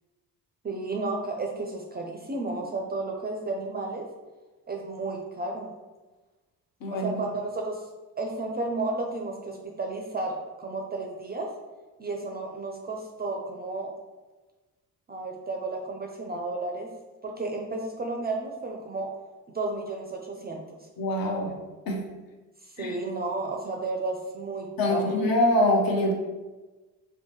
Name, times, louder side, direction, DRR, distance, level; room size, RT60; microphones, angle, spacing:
voice 1, 0.6-4.1 4.7-5.7 6.9-7.8 8.2-11.5 12.0-13.9 15.1-16.9 17.2-19.1 19.5-20.6 22.6-25.2, right 2 dB, 25° right, 1 dB, 0.4 m, -32 dB
voice 2, 21.0-21.5 21.9-22.0 22.8-23.0 24.8-26.1, left 1 dB, 55° left, 1 dB, 0.7 m, -24 dB
2.7 x 2.1 x 2.9 m, 1.2 s
hypercardioid pair, 50°, 42 cm